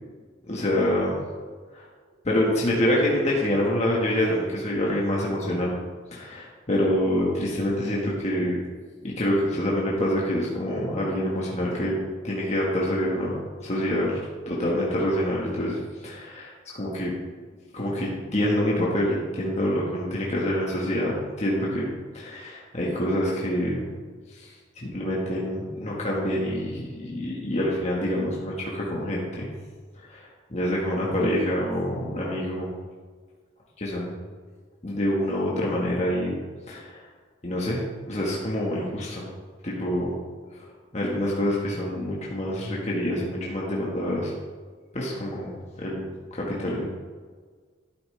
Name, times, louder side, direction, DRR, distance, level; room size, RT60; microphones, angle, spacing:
voice 1, 0.5-1.1 1.7-1.8 2.2-5.7 6.1-8.6 9.0-12.0 12.2-14.2 14.5-15.8 16.0-17.1 17.7-21.9 22.1-23.8 24.3-29.5 30.0-32.7 33.8-34.1 34.8-36.3 36.7-37.0 37.4-37.8 38.1-39.3 39.6-40.1 40.9-44.3 44.9-46.9, left 1 dB, 35° left, -4 dB, 1.5 m, -26 dB
12.0 x 8.8 x 3.3 m, 1.5 s
head